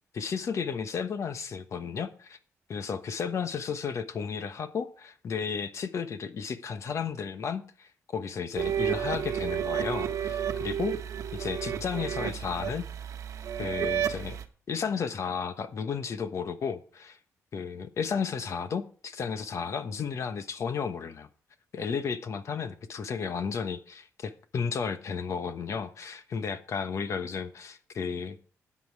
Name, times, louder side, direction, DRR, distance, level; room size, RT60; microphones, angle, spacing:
voice 1, 0.1-2.4 2.7-10.9 11.3-12.8 13.6-14.4 14.7-17.2 17.5-21.3 21.7-28.4, left 6 dB, 60° left, 1.2 m, -33 dB
sound 1, 8.6-14.4, right 8 dB, 70° right, 1.1 m, -31 dB
13.0 x 8.6 x 4.7 m
cardioid pair, 110°, 6 cm